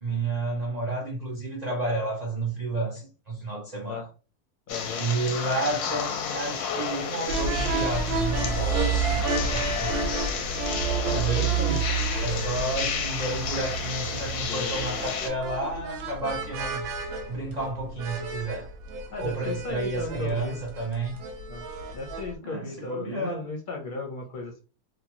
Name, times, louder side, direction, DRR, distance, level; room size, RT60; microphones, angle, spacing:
voice 1, 0.0-4.1 5.0-10.1 11.1-11.9 12.2-16.9 17.3-18.7 19.2-21.2 22.4-23.4, right 2 dB, 50° right, 0.5 m, -31 dB
sound 1, 4.7-15.3, left 6 dB, 85° left, 1.1 m, -32 dB
voice 2, 4.7-5.0 11.0-11.8 12.3-12.4 14.5-14.9 19.1-20.6 21.5-21.6 21.9-24.6, left 3 dB, 50° left, 0.6 m, -35 dB
sound 2, 7.3-22.4, right 4 dB, 70° right, 1.0 m, -30 dB
3.0 x 2.1 x 2.9 m
omnidirectional pair, 1.6 m